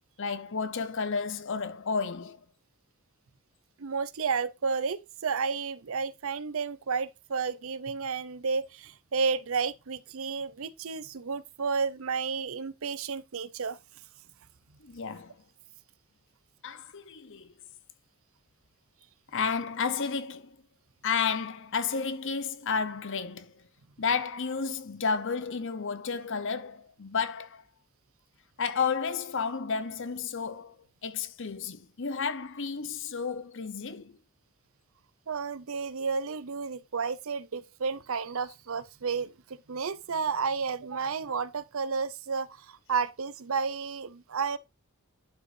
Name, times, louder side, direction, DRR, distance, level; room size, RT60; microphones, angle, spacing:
voice 1, 0.2-2.4 14.8-15.4 16.6-17.5 19.3-20.6 21.0-23.6 24.0-27.6 28.6-30.7 31.0-34.2, left 5 dB, 55° left, 0.8 m, -32 dB
voice 2, 3.8-13.8 35.3-44.6, right 5 dB, 65° right, 0.6 m, -32 dB
11.5 x 5.2 x 2.6 m
head